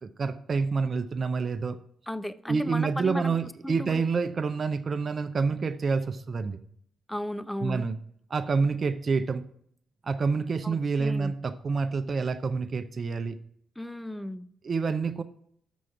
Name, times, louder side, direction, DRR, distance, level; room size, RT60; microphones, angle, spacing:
voice 1, 0.0-1.8 2.5-6.6 7.6-8.0 8.3-9.4 10.0-13.4 14.6-15.2, right 4 dB, 50° right, 9 dB, 0.6 m, -28 dB
voice 2, 2.1-3.4 3.6-4.0 7.1-7.8 10.6-11.4 13.8-14.5, left 1 dB, 5° left, 14 dB, 0.5 m, -35 dB
6.2 x 6.2 x 5.8 m, 0.67 s
supercardioid pair, 45°, 0 cm